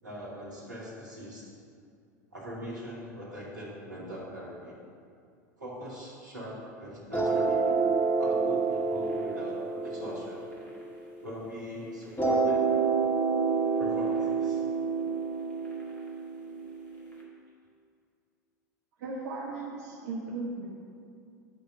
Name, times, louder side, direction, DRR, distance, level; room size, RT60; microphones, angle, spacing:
voice 1, 0.0-1.5 2.3-4.7 5.6-7.6 8.2-10.5 11.2-12.6 13.8-14.6, equal, 80° right, -7 dB, 2.2 m, -41 dB
sound 1, 7.1-11.5 12.2-17.1, right 4 dB, 20° left, 1.9 m, -28 dB
voice 2, 19.0-20.7, right 3 dB, 60° right, -5 dB, 1.1 m, -36 dB
10.0 x 3.6 x 6.6 m, 2.4 s
figure-of-eight pair, 80°, 10 cm